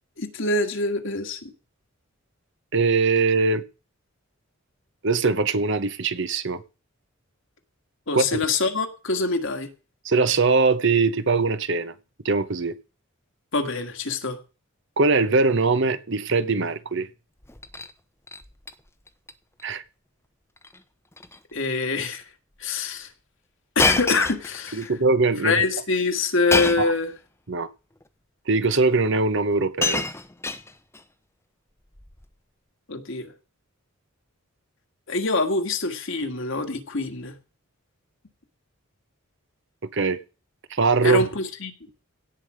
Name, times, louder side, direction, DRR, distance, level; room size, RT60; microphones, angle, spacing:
voice 1, 0.2-1.5 8.1-9.7 13.5-14.4 21.5-22.3 22.6-23.1 23.8-24.9 25.4-27.1 32.9-33.3 35.1-37.3 41.0-41.7, left 3 dB, 60° left, 1.9 m, -25 dB
voice 2, 2.7-3.6 5.0-6.6 8.1-8.4 10.0-11.9 12.2-12.8 15.0-17.1 19.6-19.8 24.7-25.6 26.8-26.9 27.5-27.7 28.5-30.1 39.9-40.2 40.7-41.3, right 4 dB, 55° right, 0.9 m, -21 dB
Shatter, 17.4-17.9 18.3-18.7 19.1-19.3 19.6-19.7 20.6-20.8 21.1-21.4 22.1-22.2 23.8-24.9 26.5-27.0 28.0-28.1 29.1-29.2 29.5-31.0 32.0-32.2, left 3 dB, 10° left, 0.8 m, -27 dB
17.0 x 8.1 x 5.0 m
head